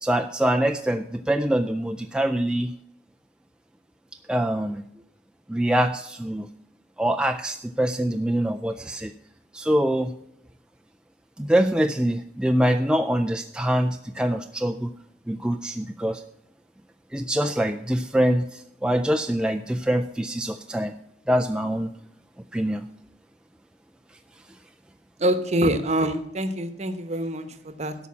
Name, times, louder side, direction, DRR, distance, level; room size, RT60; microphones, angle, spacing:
voice 1, 0.0-2.7 4.3-4.8 5.5-6.5 7.0-9.1 9.5-10.1 11.4-14.9 15.3-16.2 17.1-20.9 21.3-21.9 22.5-22.8, right 1 dB, 5° right, 4 dB, 0.3 m, -24 dB
voice 2, 25.2-28.0, right 1 dB, 35° right, 10 dB, 0.9 m, -25 dB
13.0 x 5.5 x 7.2 m, 0.75 s
head